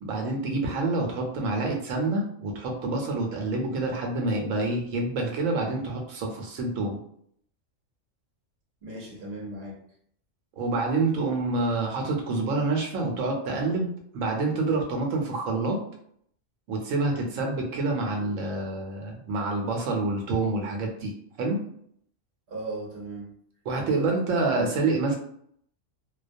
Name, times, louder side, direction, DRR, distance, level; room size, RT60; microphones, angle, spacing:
voice 1, 0.0-7.0 10.6-13.9 14.1-15.8 16.7-21.1 21.4-21.6 23.7-25.2, right 3 dB, 85° right, 1 dB, 1.0 m, -27 dB
voice 2, 8.8-9.8 22.5-23.3 23.7-24.9, right 2 dB, 50° right, -2 dB, 0.8 m, -37 dB
2.3 x 2.1 x 2.5 m, 0.66 s
omnidirectional pair, 1.3 m